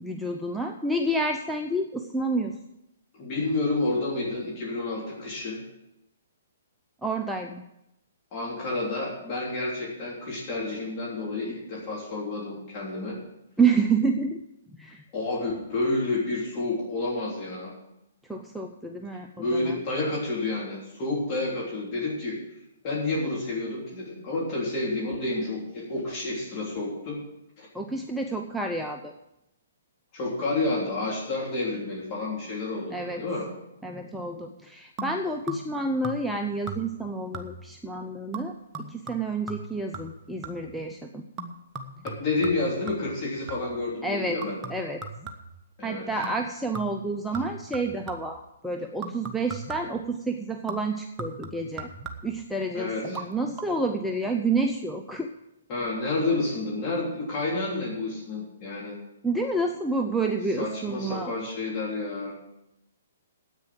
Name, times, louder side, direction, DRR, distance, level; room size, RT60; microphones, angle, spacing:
voice 1, 0.0-2.5 7.0-7.6 13.6-14.4 14.7-15.0 18.3-19.8 27.7-29.1 32.9-33.2 33.8-38.6 38.9-41.2 44.0-44.4 44.7-45.0 45.8-51.9 52.2-55.3 59.2-61.3, right 3 dB, ahead, 2 dB, 0.7 m, -29 dB
voice 2, 3.1-5.6 8.3-13.2 15.1-17.7 19.4-22.4 22.8-27.2 27.6-27.7 30.1-33.5 42.0-44.6 45.8-46.1 52.7-53.2 55.7-59.0 60.6-62.3, left 2 dB, 30° left, -5 dB, 3.4 m, -30 dB
sound 1, 35.0-35.8 36.0-36.4 36.7-37.1 37.3-37.8 38.3-40.8 41.4-43.8 44.4-45.7 46.2-46.5 46.7-48.4 49.0-50.0 50.7-52.5 53.0-53.3 53.6-53.7, right 3 dB, 20° right, 1.3 m, -39 dB
9.8 x 8.7 x 7.7 m, 0.87 s
hypercardioid pair, 130°, 0 cm